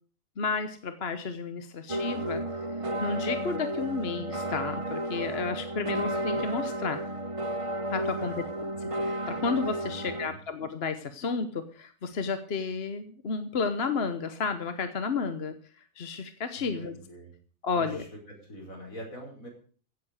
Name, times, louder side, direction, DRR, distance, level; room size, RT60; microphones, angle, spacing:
voice 1, 0.4-2.4 3.0-7.0 7.9-8.4 8.8-15.5 16.0-17.0 17.6-18.0, left 4 dB, 50° left, 9 dB, 1.2 m, -32 dB
sound 1, 1.9-10.3, right 1 dB, 30° right, 0.8 m, -32 dB
voice 2, 8.2-8.7 9.8-10.4 16.6-17.3 17.7-19.5, right 1 dB, 70° left, 1 dB, 5.4 m, -44 dB
16.0 x 8.0 x 6.6 m, 0.43 s
omnidirectional pair, 1.5 m